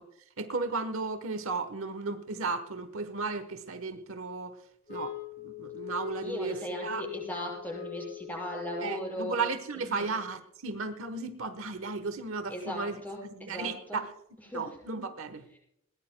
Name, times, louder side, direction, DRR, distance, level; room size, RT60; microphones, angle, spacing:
voice 1, 0.4-4.6 4.9-5.2 5.4-6.6 6.8-7.0 8.8-13.0 13.4-14.1 14.5-15.6, right 4 dB, 70° right, 9 dB, 1.1 m, -34 dB
sound 1, 4.9-9.2, left 13 dB, 40° left, 6.4 m, -42 dB
voice 2, 6.2-9.4 9.7-10.1 12.5-14.0 14.5-14.7, equal, 10° left, -2 dB, 6.3 m, -38 dB
21.0 x 19.0 x 2.2 m, 0.79 s
head